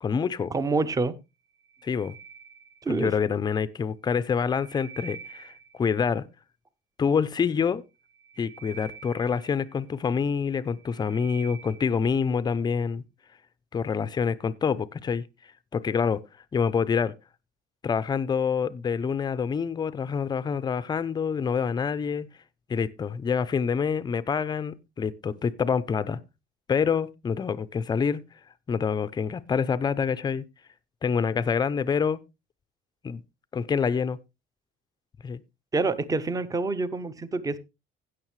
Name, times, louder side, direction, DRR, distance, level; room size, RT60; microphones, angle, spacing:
voice 1, 0.0-0.5 1.8-2.1 2.9-5.5 5.8-6.3 7.0-7.8 8.4-13.0 13.7-15.2 15.7-16.2 16.5-17.1 17.8-22.3 22.7-26.2 26.7-28.2 28.7-30.5 31.0-32.2 33.0-33.2 33.5-34.2 35.2-35.4, left 6 dB, 20° left, 0.5 m, -26 dB
voice 2, 0.5-1.1 2.8-3.1 35.7-37.6, right 3 dB, 15° right, 0.7 m, -27 dB
sound 1, 1.5-3.2 4.1-6.0 8.0-10.1 10.5-12.1, right 7 dB, 60° right, 3.1 m, -47 dB
16.5 x 6.3 x 3.2 m
cardioid pair, 160°, 20 cm